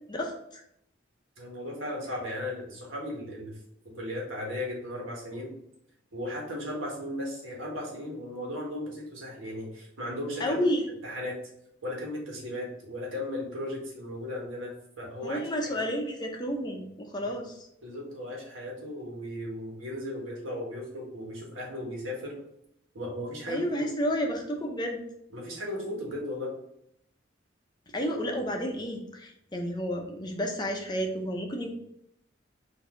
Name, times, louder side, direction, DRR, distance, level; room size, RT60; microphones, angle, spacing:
voice 1, 0.1-0.6 10.4-10.8 15.2-17.7 23.5-25.0 27.9-31.7, equal, 20° left, 2 dB, 0.6 m, -31 dB
voice 2, 1.4-3.5 3.9-5.5 6.1-10.6 11.0-11.3 11.8-14.7 15.0-15.4 17.8-22.3 22.9-23.8 25.3-26.5, left 1 dB, 85° right, -2 dB, 1.5 m, -36 dB
4.1 x 2.7 x 3.7 m, 0.75 s
head